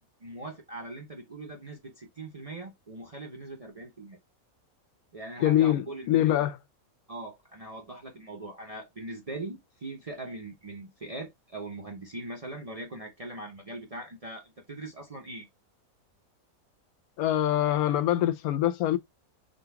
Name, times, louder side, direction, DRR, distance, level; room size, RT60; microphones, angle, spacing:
voice 1, 0.2-4.2 5.1-6.4 7.1-15.5, right 2 dB, 40° right, 0.5 m, -41 dB
voice 2, 5.4-6.6 17.2-19.0, left 12 dB, 80° left, 1.0 m, -24 dB
3.8 x 2.3 x 4.4 m
omnidirectional pair, 1.5 m